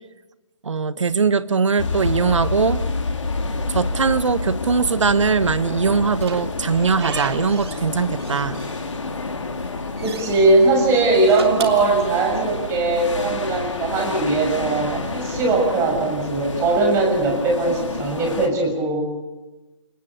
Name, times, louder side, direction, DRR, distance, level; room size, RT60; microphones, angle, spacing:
voice 1, 0.6-2.8 3.7-8.6, right 5 dB, 70° right, 16 dB, 1.2 m, -21 dB
sound 1, 1.8-18.5, left 3 dB, 75° left, 3.4 m, -29 dB
Slam / Squeak, 5.9-7.9 8.2-9.2 9.5-10.4 11.1-12.6, right 5 dB, 55° right, 3.4 m, -34 dB
voice 2, 10.0-19.0, right 3 dB, 15° right, 2 dB, 6.8 m, -20 dB
29.5 x 19.5 x 8.1 m, 1.1 s
figure-of-eight pair, 140°, 16 cm